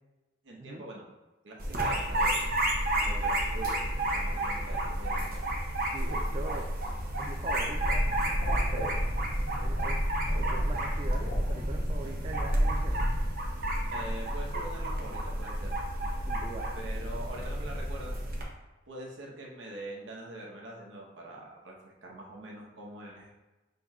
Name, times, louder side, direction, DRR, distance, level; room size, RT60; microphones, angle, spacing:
voice 1, 0.4-1.1 1.4-2.5 3.0-5.3 13.9-15.8 16.7-18.3 18.9-23.3, right 1 dB, 85° right, -2 dB, 1.0 m, -44 dB
sound 1, 1.6-18.4, right 1 dB, 50° right, 0.7 m, -31 dB
voice 2, 5.9-6.7 7.2-9.0 9.6-10.0 10.4-13.0 16.2-16.7, right 2 dB, 30° right, 0 dB, 0.4 m, -42 dB
sound 2, 7.7-13.3, equal, 80° left, 0.9 m, -30 dB
5.6 x 3.7 x 2.3 m, 1.1 s
head